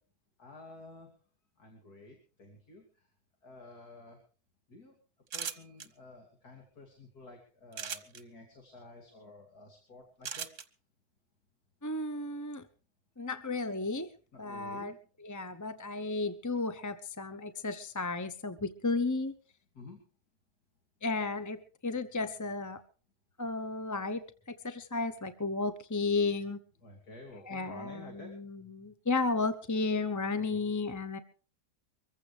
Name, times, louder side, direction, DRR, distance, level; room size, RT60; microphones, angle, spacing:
voice 1, 0.4-1.1 1.6-3.1 3.4-4.2 4.7-4.9 5.3-10.5 14.3-15.0 19.7-20.0 26.8-28.5, left 2 dB, 80° left, 2 dB, 3.4 m, -51 dB
sound 1, 5.3-5.9 7.7-8.2 10.2-10.6, right 7 dB, 55° right, 1.4 m, -37 dB
voice 2, 11.8-12.7 13.2-14.1 14.4-14.9 15.2-19.3 21.0-22.8 23.4-24.2 24.5-26.6 27.5-31.2, left 3 dB, 15° left, 11 dB, 0.6 m, -33 dB
24.0 x 15.0 x 3.3 m, 0.40 s
omnidirectional pair, 1.6 m